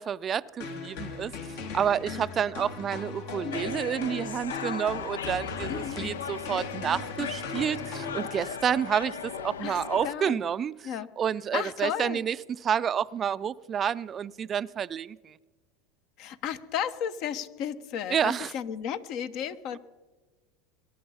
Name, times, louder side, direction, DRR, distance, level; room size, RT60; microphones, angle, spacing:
voice 1, 0.0-1.3 1.7-10.7 11.2-12.4 12.6-15.3 18.1-18.5, right 8 dB, 35° right, 0.4 m, -29 dB
sound 1, 0.6-8.7, left 4 dB, 70° left, 2.5 m, -38 dB
sound 2, 3.5-10.1, left 7 dB, 90° left, 0.6 m, -37 dB
voice 2, 5.7-6.1 9.6-10.4 10.8-11.1 11.5-12.2 16.2-19.8, left 9 dB, 55° left, 0.9 m, -34 dB
22.5 x 11.0 x 5.6 m
hypercardioid pair, 95°, 0 cm